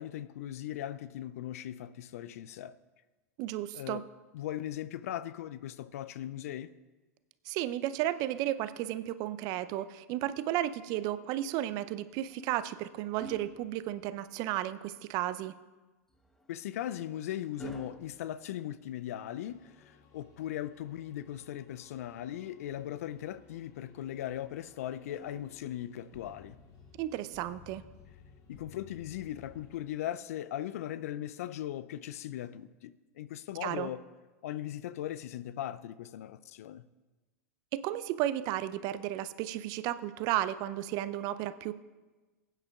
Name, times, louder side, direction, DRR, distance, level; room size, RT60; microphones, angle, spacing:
voice 1, 0.0-2.7 3.7-4.0 4.3-6.7 16.5-26.6 28.5-34.0 34.4-36.9, left 12 dB, 65° left, 0.5 m, -39 dB
voice 2, 3.4-4.0 7.5-15.5 27.0-27.8 33.6-33.9 37.7-41.7, right 13 dB, 45° right, 0.6 m, -33 dB
sound 1, 12.0-14.5 16.1-19.3 21.0-22.2 24.2-26.0 27.2-27.5, right 1 dB, 5° left, 0.8 m, -53 dB
sound 2, 19.4-30.0, left 5 dB, 40° left, 1.6 m, -58 dB
20.5 x 9.0 x 2.4 m
figure-of-eight pair, 90°, 9 cm